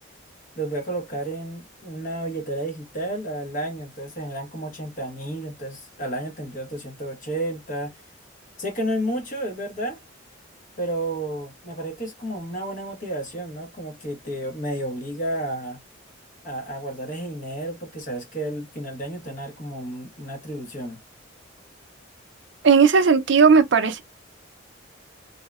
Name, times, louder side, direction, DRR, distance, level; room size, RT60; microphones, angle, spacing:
voice 1, 0.6-7.9 8.6-10.0 10.8-15.8 16.4-21.0, right 1 dB, 40° left, 0.9 m, -31 dB
voice 2, 22.6-24.0, right 5 dB, 60° right, 0.4 m, -16 dB
2.7 x 2.1 x 2.3 m
head